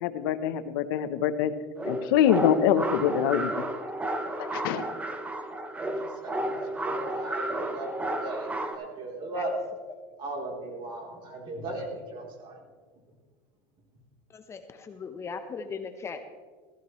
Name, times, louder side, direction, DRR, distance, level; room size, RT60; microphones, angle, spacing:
voice 1, 0.0-1.5 1.8-3.5 4.4-4.8, left 9 dB, 80° left, 12 dB, 0.8 m, -24 dB
sound 1, 1.8-8.8, right 1 dB, 10° right, 1.0 m, -32 dB
voice 2, 6.2-6.6 6.8-9.5 10.2-12.6, right 2 dB, 40° right, 0 dB, 3.3 m, -37 dB
voice 3, 14.3-16.2, left 5 dB, 25° left, 8 dB, 0.8 m, -38 dB
15.0 x 14.5 x 3.1 m, 1.5 s
supercardioid pair, 135°, 12 cm